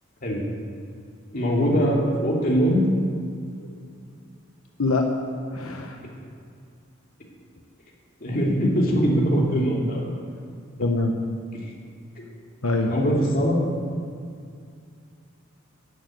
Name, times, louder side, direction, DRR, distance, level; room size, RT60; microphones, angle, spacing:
voice 1, 1.3-2.8 8.2-10.1 11.6-11.7 12.2-12.3 12.9-13.6, equal, 45° left, -3 dB, 2.8 m, -22 dB
voice 2, 4.8-5.1 5.5-6.0 10.8-11.1 12.6-12.9, left 2 dB, 90° left, 3 dB, 1.1 m, -24 dB
14.0 x 6.8 x 9.4 m, 2.3 s
head